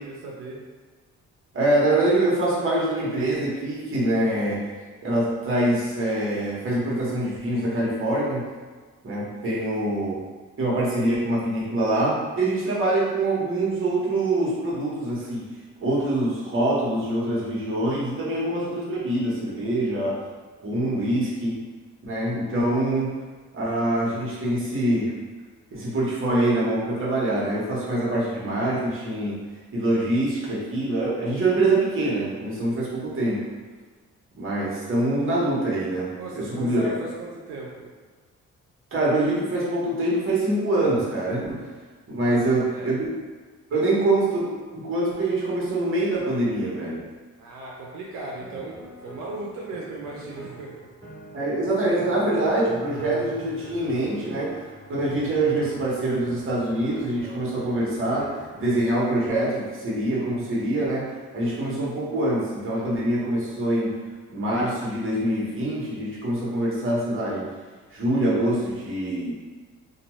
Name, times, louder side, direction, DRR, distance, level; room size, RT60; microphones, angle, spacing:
voice 1, 0.0-0.6 36.2-37.9 42.3-42.9 43.7-43.8 47.4-50.9, right 2 dB, 85° right, -4 dB, 0.6 m, -37 dB
voice 2, 1.5-4.7 5.0-8.5 9.0-10.2 10.6-15.5 15.8-20.2 20.6-21.6 22.0-23.1 23.5-25.1 25.7-29.4 29.7-33.4 34.4-36.9 38.9-41.6 42.1-43.1 43.7-47.0 51.3-54.6 54.9-64.0 64.3-67.5 67.9-69.3, right 1 dB, 45° right, -6 dB, 1.1 m, -24 dB
sound 1, 48.4-58.8, right 1 dB, 15° left, 1.1 m, -43 dB
2.6 x 2.3 x 3.0 m, 1.4 s
cardioid pair, 90°, 30 cm